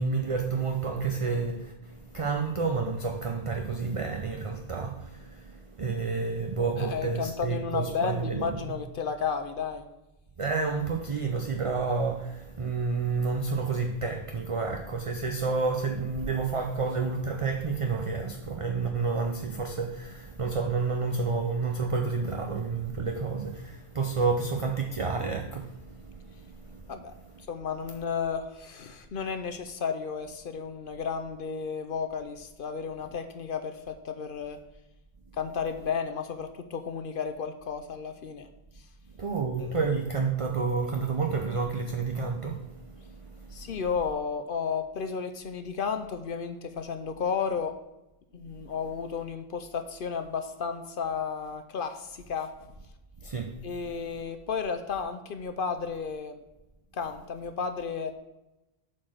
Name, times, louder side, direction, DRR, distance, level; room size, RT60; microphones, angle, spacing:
voice 1, 0.0-8.8 10.4-27.4 39.1-43.8 48.4-48.7 53.2-54.2, right 4 dB, 40° right, 0.6 m, -30 dB
voice 2, 6.8-9.9 26.9-27.1 27.5-34.6 35.4-38.5 39.6-39.7 43.5-47.7 48.3-52.5 53.6-56.4 56.9-58.2, left 6 dB, 60° left, 0.7 m, -33 dB
7.4 x 4.5 x 6.3 m
omnidirectional pair, 1.1 m